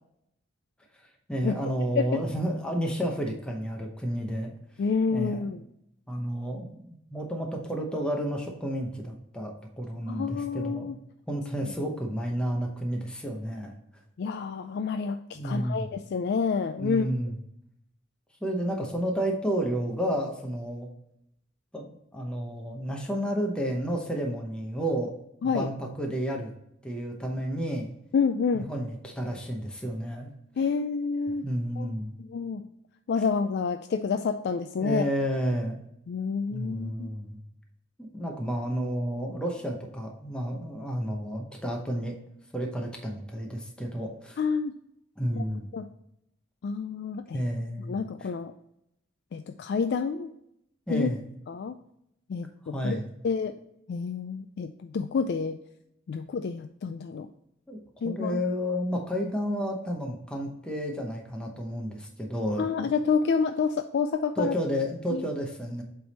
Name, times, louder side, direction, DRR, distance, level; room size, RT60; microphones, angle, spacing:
voice 1, 1.3-4.5 5.1-5.4 6.1-10.9 11.3-13.7 15.3-15.9 16.8-17.3 18.4-20.9 21.7-25.1 25.4-26.5 26.8-27.9 28.5-30.3 31.4-32.1 34.8-35.8 36.5-37.4 38.1-42.2 42.5-44.4 45.2-45.7 47.3-48.0 50.9-51.3 52.7-53.1 57.7-57.8 58.0-62.7 64.4-65.8, equal, 5° left, 0 dB, 0.8 m, -31 dB
voice 2, 4.8-5.6 10.1-11.0 11.6-11.7 14.2-17.1 25.4-25.7 28.1-28.7 30.6-31.5 31.8-31.9 32.2-32.6 33.1-35.0 36.1-37.1 44.4-44.7 45.3-45.4 45.7-45.9 46.6-47.4 47.9-48.5 49.3-50.3 50.9-51.1 51.5-51.8 52.3-53.0 53.2-53.5 53.9-55.6 56.1-57.3 58.0-58.4 62.6-64.6 65.1-65.2, left 5 dB, 60° left, 8 dB, 0.3 m, -28 dB
7.8 x 3.5 x 4.1 m, 0.78 s
head